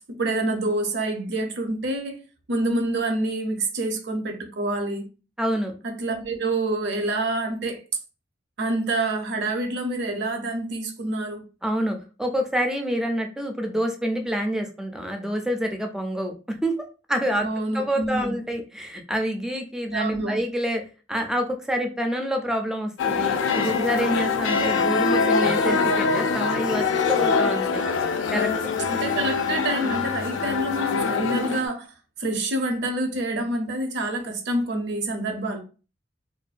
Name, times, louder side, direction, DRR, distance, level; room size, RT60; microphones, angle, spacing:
voice 1, 0.1-2.2 2.5-5.0 5.8-7.8 8.6-11.4 17.4-18.3 19.9-20.4 28.9-31.8 32.2-35.6, right 2 dB, 65° right, 0.6 m, -27 dB
voice 2, 5.4-5.7 11.6-16.7 17.1-17.5 17.7-20.8 21.1-27.8 28.3-28.7, equal, 5° right, 0.3 m, -27 dB
sound 1, 23.0-31.7, left 5 dB, 85° left, 0.3 m, -24 dB
2.5 x 2.2 x 2.4 m
head